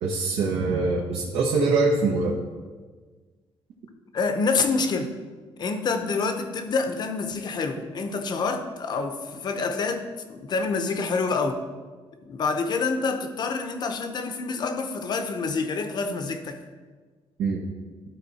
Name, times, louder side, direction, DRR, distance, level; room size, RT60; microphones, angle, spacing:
voice 1, 0.0-2.4 17.4-17.6, right 3 dB, 85° right, -2 dB, 1.1 m, -23 dB
voice 2, 4.1-5.1 5.6-10.0 10.3-11.6 12.2-16.6, left 4 dB, 45° left, 7 dB, 0.8 m, -27 dB
12.5 x 4.2 x 4.2 m, 1.4 s
cardioid pair, 145°, 10 cm